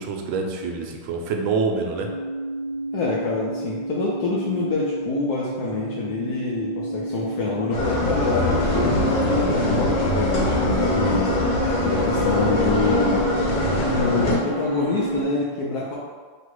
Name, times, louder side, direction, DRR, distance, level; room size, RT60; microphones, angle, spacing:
voice 1, 0.0-2.1, right 4 dB, 75° right, 3 dB, 1.3 m, -26 dB
sound 1, 1.9-15.2, right 2 dB, 55° right, 1.0 m, -29 dB
voice 2, 2.9-11.5 11.8-13.3 13.8-16.0, left 4 dB, 80° left, -5 dB, 0.8 m, -26 dB
sound 2, 7.7-14.4, left 1 dB, 60° left, 1.1 m, -22 dB
3.1 x 2.9 x 4.5 m, 1.5 s
omnidirectional pair, 2.3 m